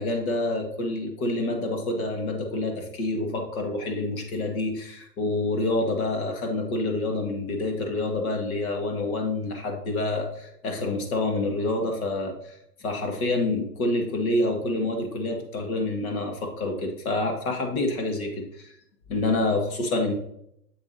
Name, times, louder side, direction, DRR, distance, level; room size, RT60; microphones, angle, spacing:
voice 1, 0.0-12.4 12.8-18.7 19.1-20.1, left 2 dB, 55° left, 3 dB, 2.0 m, -27 dB
7.3 x 7.0 x 2.8 m, 0.74 s
hypercardioid pair, 135°, 49 cm